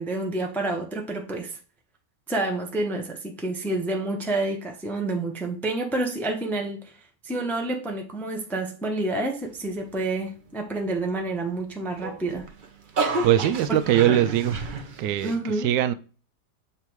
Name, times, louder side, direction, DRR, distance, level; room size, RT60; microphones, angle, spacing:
voice 1, 0.0-1.6 2.3-6.9 7.2-12.5 13.7-13.8 15.2-15.7, right 2 dB, ahead, 0.6 m, -28 dB
sound 1, 11.9-15.4, right 3 dB, 45° right, 0.6 m, -30 dB
voice 2, 13.2-14.6 15.0-15.3 15.6-15.9, right 11 dB, 85° right, 1.2 m, -21 dB
6.9 x 3.3 x 4.6 m
omnidirectional pair, 1.8 m